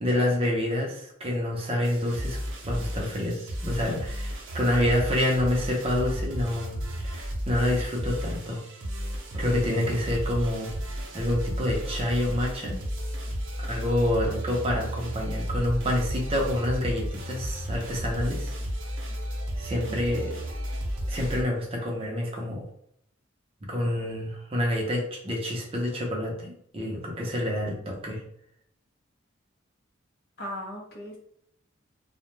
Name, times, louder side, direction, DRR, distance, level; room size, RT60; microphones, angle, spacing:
voice 1, 0.0-2.4 2.7-6.8 7.0-8.6 9.3-10.7 11.1-12.8 13.6-18.5 19.6-20.3 21.1-22.6 23.6-28.2, left 1 dB, 30° right, -1 dB, 0.5 m, -27 dB
sound 1, 1.8-21.4, equal, 75° right, 0.6 m, -33 dB
voice 2, 19.8-20.3 30.4-31.2, equal, 50° left, -1 dB, 0.6 m, -38 dB
2.2 x 2.0 x 3.0 m, 0.70 s
head